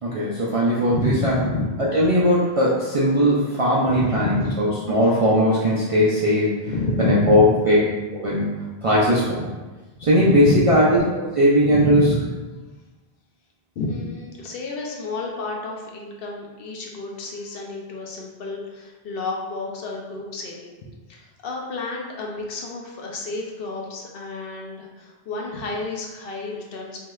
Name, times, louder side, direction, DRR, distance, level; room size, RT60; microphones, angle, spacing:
voice 1, 0.0-1.4 1.9-6.6 7.0-7.8 8.1-8.5 8.8-9.5 10.0-11.0 11.4-12.0, equal, 55° right, -7 dB, 0.4 m, -19 dB
voice 2, 0.9-2.1 3.9-4.6 6.7-7.3 10.0-10.7 11.6-12.3 13.8-20.7 21.1-27.0, left 2 dB, 70° left, -1 dB, 0.7 m, -29 dB
3.0 x 2.7 x 2.3 m, 1.2 s
omnidirectional pair, 1.0 m